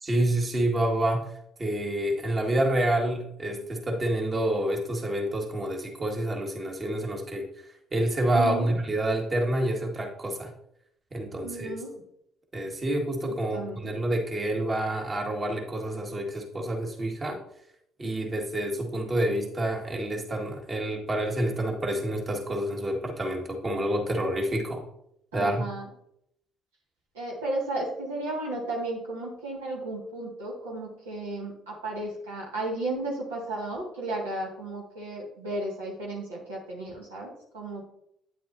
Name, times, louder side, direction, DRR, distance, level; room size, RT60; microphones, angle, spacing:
voice 1, 0.0-1.3 1.6-7.5 7.9-10.5 11.1-11.7 12.5-17.4 18.0-24.8 25.3-25.7, right 1 dB, 35° right, 2 dB, 1.8 m, -28 dB
voice 2, 8.3-8.8 11.4-11.9 13.3-13.9 25.3-25.8 27.1-37.9, right 2 dB, 85° right, -3 dB, 1.9 m, -34 dB
9.0 x 7.7 x 2.7 m, 0.75 s
hypercardioid pair, 55°, 0 cm